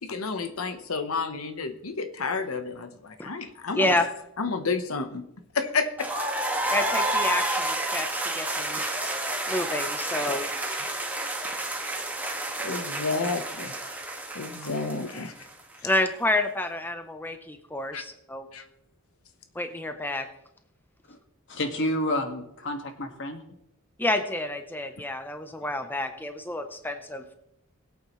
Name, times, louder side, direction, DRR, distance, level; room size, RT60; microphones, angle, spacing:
voice 1, 0.0-3.9 4.4-5.2 5.5-5.9 10.2-10.4 12.6-13.7 14.3-15.3 17.9-18.0 18.5-18.6, left 4 dB, 85° left, 7 dB, 1.0 m, -30 dB
voice 2, 3.7-4.1 6.7-9.1 9.5-10.5 11.5-11.8 14.6-14.7 15.8-18.5 19.5-20.3 24.0-27.2, left 2 dB, 10° left, 6 dB, 0.8 m, -29 dB
sound 1, 6.0-15.8, right 1 dB, 10° right, 1.7 m, -30 dB
voice 3, 21.5-23.4, left 1 dB, 60° left, 4 dB, 1.8 m, -29 dB
21.5 x 8.4 x 3.2 m, 0.82 s
head